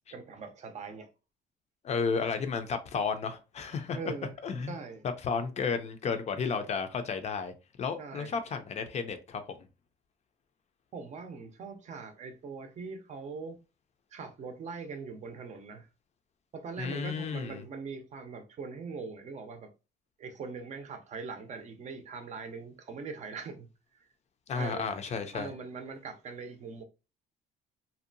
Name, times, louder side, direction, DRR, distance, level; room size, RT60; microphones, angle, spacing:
voice 1, 0.1-1.1 3.9-4.3 4.7-5.0 8.0-8.3 10.9-13.6 14.1-15.9 16.5-19.7 20.2-23.7 24.5-24.9 25.3-26.8, right 4 dB, 45° right, 0.5 m, -41 dB
voice 2, 1.8-4.0 4.4-4.7 5.2-7.5 7.8-9.6 16.8-17.6 24.5-25.5, left 5 dB, 40° left, 0.4 m, -32 dB
2.6 x 2.1 x 2.6 m
cardioid pair, 110°, 17 cm